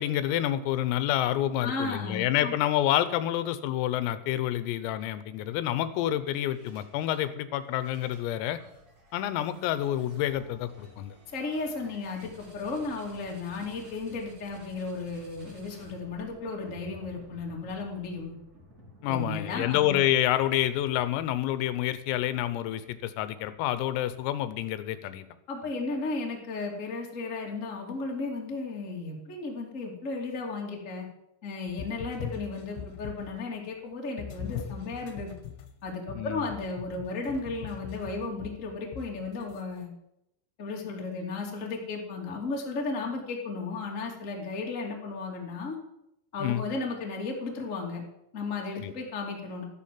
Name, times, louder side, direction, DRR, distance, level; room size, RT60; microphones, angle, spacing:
voice 1, 0.0-8.6 9.1-11.2 19.0-25.3 36.2-36.5 46.4-46.6 48.8-48.9, left 12 dB, 85° left, 13 dB, 3.6 m, -28 dB
voice 2, 1.6-2.5 11.3-18.3 19.1-20.0 25.5-31.0 31.4-35.3 35.8-39.9 40.6-45.8 46.3-48.0 48.3-49.6, left 3 dB, 25° left, 0 dB, 1.7 m, -34 dB
sound 1, 6.5-7.3 7.6-24.6, left 1 dB, 20° right, 3.1 m, -54 dB
sound 2, 31.7-33.4 34.2-39.6, left 8 dB, 70° left, 3.2 m, -41 dB
13.5 x 10.5 x 7.6 m, 0.84 s
omnidirectional pair, 5.9 m